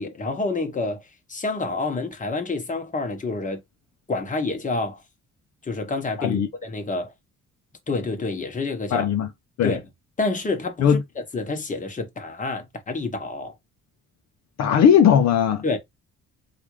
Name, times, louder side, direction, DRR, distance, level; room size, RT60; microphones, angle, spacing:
voice 1, 0.0-3.6 4.1-5.0 5.6-7.1 7.9-9.1 9.6-9.8 10.2-11.0 11.3-13.5 15.6-15.8, left 3 dB, 25° left, 1.1 m, -28 dB
voice 2, 8.9-9.3 9.6-9.7 10.8-11.0 14.6-15.6, left 8 dB, 60° left, 0.6 m, -18 dB
3.4 x 2.5 x 3.1 m
cardioid pair, 90°, 30 cm